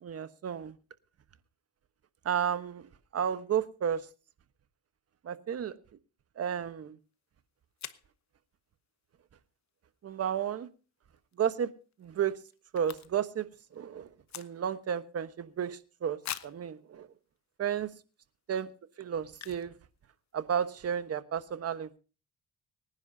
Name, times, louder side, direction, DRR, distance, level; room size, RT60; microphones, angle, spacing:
voice 1, 0.0-0.7 2.2-2.8 3.1-4.0 5.2-5.7 6.4-7.0 10.0-10.7 11.4-11.7 12.0-12.4 12.7-13.5 13.7-14.1 14.3-16.2 16.4-17.1 17.6-17.9 18.5-18.7 19.0-19.7 20.3-22.0, right 8 dB, 50° right, 12 dB, 1.2 m, -32 dB
sound 1, 7.1-7.2 7.8-8.1 11.1-11.3 11.7-11.8 11.9-13.4 13.7-14.9 15.4-15.5 16.2-16.7 17.4-17.5 18.0-18.1 19.3-19.8 20.0-20.1 20.3-20.6, left 11 dB, 65° left, 1.0 m, -44 dB
24.5 x 10.5 x 2.8 m, 0.34 s
cardioid pair, 90°, 30 cm